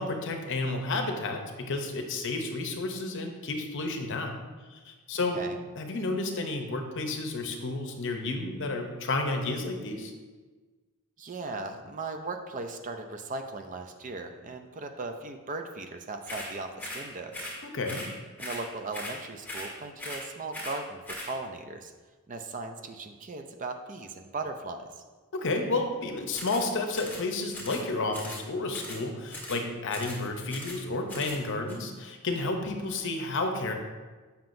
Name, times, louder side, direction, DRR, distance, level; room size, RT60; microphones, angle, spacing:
voice 1, 0.0-4.4 4.7-5.4 5.8-10.1 17.6-18.1 25.3-33.7, left 2 dB, 55° left, 4 dB, 0.7 m, -31 dB
voice 2, 11.2-17.5 18.4-21.9 22.3-24.9, right 3 dB, 35° right, 6 dB, 0.4 m, -38 dB
sound 1, 16.2-16.5 16.8-17.1 17.3-17.6 17.8-18.1 18.4-18.7 18.9-19.2 19.4-19.7 20.0-20.3 20.5-20.8 21.0-21.3 26.3-26.7 26.9-27.2 27.5-27.8 28.1-28.4 28.7-29.0 29.3-29.6 29.9-30.2 30.5-30.8 31.1-31.4 31.7-31.8, left 1 dB, 10° left, 1.5 m, -39 dB
7.5 x 5.7 x 2.6 m, 1.3 s
head